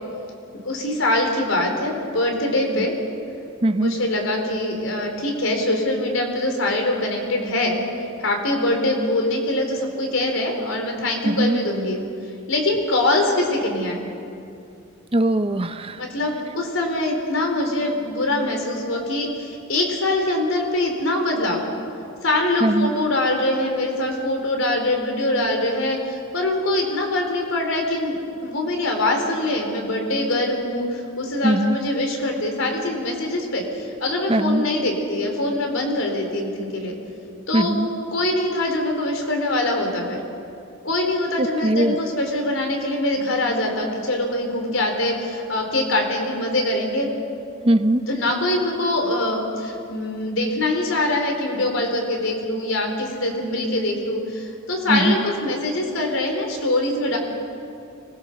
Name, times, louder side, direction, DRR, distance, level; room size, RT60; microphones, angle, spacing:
voice 1, 0.6-3.0 3.8-12.0 12.5-14.0 16.0-21.6 22.2-28.2 28.4-37.0 37.5-37.7 38.1-40.2 40.8-47.1 48.1-57.2, left 1 dB, 75° left, 2 dB, 4.1 m, -23 dB
voice 2, 3.6-3.9 11.2-11.6 15.1-16.0 22.6-22.9 31.4-31.8 34.3-34.6 37.5-37.9 41.4-41.9 47.6-48.0 54.9-55.2, right 1 dB, 25° right, 9 dB, 0.8 m, -20 dB
25.5 x 21.0 x 6.7 m, 2.6 s
head